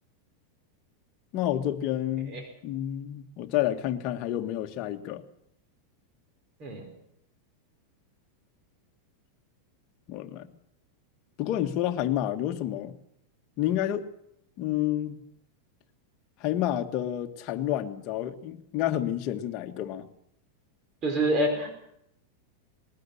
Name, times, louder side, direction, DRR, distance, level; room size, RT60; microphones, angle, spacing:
voice 1, 1.3-2.4 2.6-5.2 10.1-10.5 11.4-12.9 13.6-14.1 14.6-15.2 16.4-20.1, left 12 dB, 40° left, 6 dB, 1.6 m, -29 dB
voice 2, 21.0-21.7, right 1 dB, 30° right, 4 dB, 5.0 m, -26 dB
20.0 x 13.0 x 9.9 m, 0.76 s
supercardioid pair, 150°, 0 cm